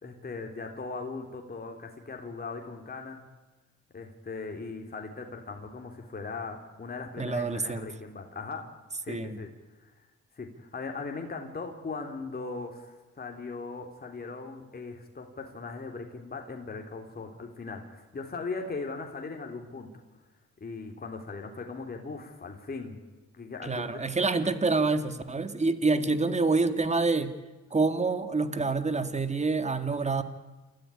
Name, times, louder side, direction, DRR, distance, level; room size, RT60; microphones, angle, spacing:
voice 1, 0.0-3.2 3.9-8.6 9.0-9.5 9.8-9.9 10.4-19.9 20.6-23.0 23.4-24.0, left 4 dB, 30° left, 2 dB, 3.6 m, -39 dB
voice 2, 7.2-7.9 9.1-9.4 23.6-27.3 27.7-30.2, right 3 dB, 20° right, 10 dB, 2.1 m, -27 dB
28.0 x 14.0 x 9.9 m, 1.2 s
cardioid pair, 90°, 30 cm